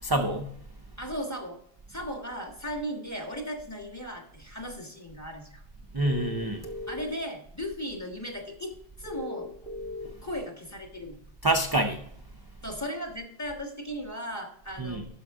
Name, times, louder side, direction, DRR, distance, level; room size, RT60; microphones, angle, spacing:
voice 1, 0.0-0.5 5.9-6.7 10.0-10.1 11.4-12.1 14.8-15.0, right 1 dB, 30° right, 0.4 m, -27 dB
voice 2, 1.0-1.6 1.9-5.6 6.9-9.5 10.2-11.2 12.6-15.1, equal, 15° left, 1.3 m, -36 dB
sound 1, 6.0-7.0 9.1-10.1, left 2 dB, 50° left, 1.5 m, -37 dB
12.0 x 5.3 x 3.6 m
omnidirectional pair, 1.1 m